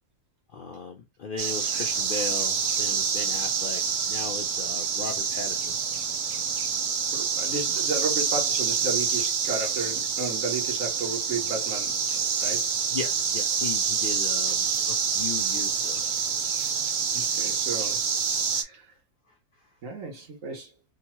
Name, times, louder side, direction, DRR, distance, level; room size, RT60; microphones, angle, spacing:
voice 1, 0.5-5.8 12.9-16.0, left 5 dB, 75° left, 0.4 m, -37 dB
sound 1, 1.4-18.6, right 6 dB, 85° right, 1.3 m, -27 dB
voice 2, 7.1-12.0 12.4-12.7 17.1-18.0 18.5-18.8 19.8-20.7, right 3 dB, 65° right, 1.5 m, -33 dB
3.8 x 2.2 x 2.9 m
omnidirectional pair, 1.6 m